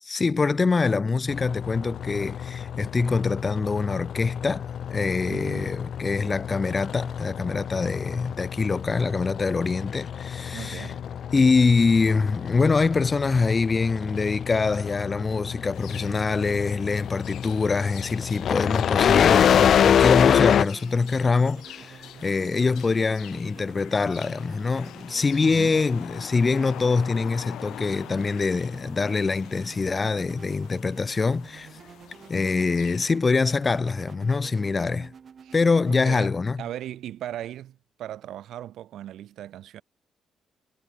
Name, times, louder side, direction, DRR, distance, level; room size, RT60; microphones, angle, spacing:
voice 1, 0.0-4.6 4.9-10.9 11.3-31.7 32.3-35.1 35.5-36.6, left 4 dB, 30° left, 0.8 m, -24 dB
sound 1, 1.3-20.6, left 9 dB, 60° left, 0.6 m, -26 dB
voice 2, 5.3-5.8 10.5-11.0 25.4-25.8 35.4-35.5 35.9-39.8, right 12 dB, 75° right, 0.9 m, -38 dB
sound 2, 15.7-33.1, left 13 dB, 80° left, 3.8 m, -45 dB
sound 3, 19.8-37.6, right 6 dB, 50° right, 2.1 m, -49 dB
cardioid pair, 90°, 0 cm